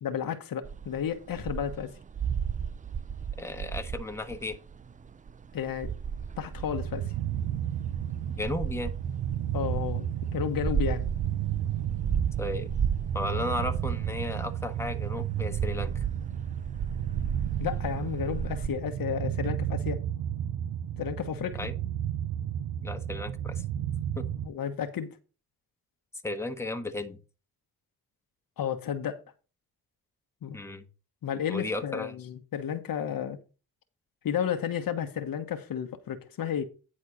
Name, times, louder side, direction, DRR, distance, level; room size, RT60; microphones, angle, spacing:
voice 1, 0.0-1.9 5.5-5.9 6.4-7.1 9.5-10.1 10.3-11.1 17.6-20.0 21.0-21.6 24.4-25.1 28.6-29.2 30.4-30.6 31.2-33.4 34.2-36.6, left 8 dB, 70° left, 1.3 m, -32 dB
sound 1, 0.6-18.7, right 7 dB, 25° right, 0.4 m, -35 dB
voice 2, 3.4-4.6 8.4-8.9 12.4-12.7 13.1-16.0 21.5-21.7 22.8-23.6 24.1-24.2 26.2-27.2 30.5-30.8 31.5-32.1, left 2 dB, 5° left, 1.3 m, -34 dB
sound 2, 6.7-24.5, right 10 dB, 75° right, 0.7 m, -32 dB
9.8 x 4.3 x 6.3 m
cardioid pair, 80°, 36 cm